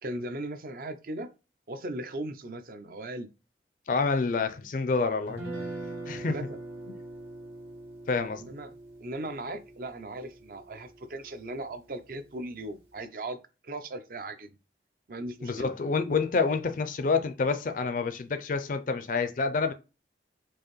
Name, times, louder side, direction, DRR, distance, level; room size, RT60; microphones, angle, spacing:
voice 1, 0.0-1.3 1.7-3.3 6.2-6.6 8.4-8.7 9.0-13.4 13.6-14.6 15.1-15.7, right 1 dB, 50° right, 0.5 m, -38 dB
voice 2, 3.9-5.4 6.1-6.3 8.1-8.5 15.4-19.7, left 4 dB, 50° left, 0.4 m, -28 dB
Guitar, 5.3-11.4, right 2 dB, 80° right, 1.7 m, -42 dB
4.6 x 2.5 x 3.0 m
head